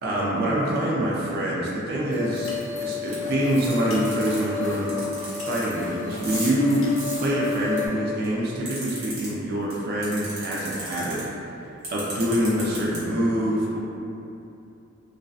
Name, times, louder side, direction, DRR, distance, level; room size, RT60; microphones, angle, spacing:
voice 1, 0.0-2.5 2.8-5.0 5.3-6.9 7.1-11.5 11.9-13.8, right 1 dB, 45° right, -5 dB, 0.3 m, -25 dB
sound 1, 2.1-7.9, left 6 dB, 60° left, 0.5 m, -32 dB
sound 2, 3.1-3.2 3.6-3.7 4.0-4.4 4.9-5.6 6.1-7.8 8.2-9.3 9.7-9.8 10.0-11.2 11.8-13.0, right 2 dB, 65° right, 0.8 m, -35 dB
2.5 x 2.1 x 2.3 m, 2.7 s
head